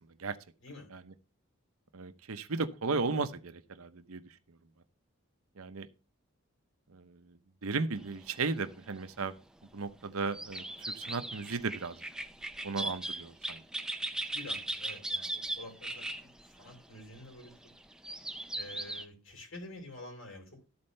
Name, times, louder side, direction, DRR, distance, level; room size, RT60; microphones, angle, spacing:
voice 1, 1.9-4.3 5.6-5.9 6.9-9.4 9.7-12.0 12.6-13.6, right 4 dB, 85° right, 0.8 m, -35 dB
sound 1, 8.0-9.0 10.3-19.1, right 1 dB, 5° right, 0.4 m, -39 dB
voice 2, 13.8-17.5 18.6-20.6, left 2 dB, 70° left, 3.7 m, -49 dB
13.0 x 4.4 x 5.4 m
head